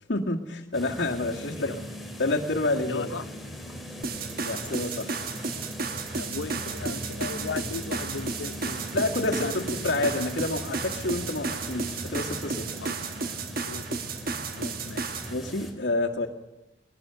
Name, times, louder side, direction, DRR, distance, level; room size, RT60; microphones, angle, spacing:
voice 1, 0.1-1.7 2.2-3.1 4.4-5.1 8.9-12.7 15.3-16.3, left 2 dB, 70° left, -2 dB, 1.8 m, -28 dB
sound 1, 0.7-15.7, equal, ahead, 2.7 m, -39 dB
voice 2, 2.9-3.3 6.1-8.8 9.2-9.7 12.8-13.0 13.7-14.3 14.6-15.2, left 4 dB, 85° left, 14 dB, 0.7 m, -36 dB
sound 2, 4.0-15.3, right 4 dB, 55° right, 1.4 m, -33 dB
21.0 x 20.0 x 6.9 m, 1.0 s
head